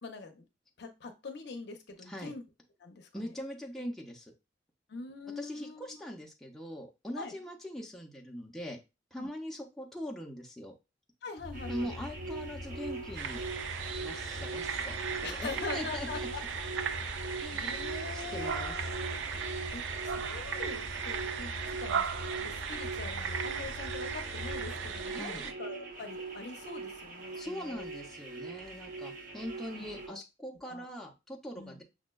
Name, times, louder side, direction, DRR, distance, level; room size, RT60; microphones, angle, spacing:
voice 1, 0.0-0.4 0.8-2.4 2.8-3.4 4.9-6.0 7.1-7.3 9.2-9.3 11.2-11.9 15.2-16.4 16.7-18.8 19.7-22.1 22.4-27.8 29.7-30.2 30.6-30.9 31.6-31.8, left 4 dB, 65° left, 5 dB, 0.6 m, -44 dB
voice 2, 3.1-4.3 5.4-8.8 9.1-10.7 11.7-13.4 14.0-15.0 15.3-16.3 17.4-17.8 18.1-18.9 25.1-25.4 27.4-31.8, equal, ahead, -2 dB, 0.5 m, -42 dB
sound 1, 11.4-25.1, left 1 dB, 35° left, 0.8 m, -44 dB
sound 2, 11.5-30.1, right 3 dB, 45° right, 0.7 m, -42 dB
sound 3, 13.2-25.5, right 7 dB, 90° right, 0.4 m, -37 dB
6.0 x 2.1 x 2.2 m, 0.25 s
head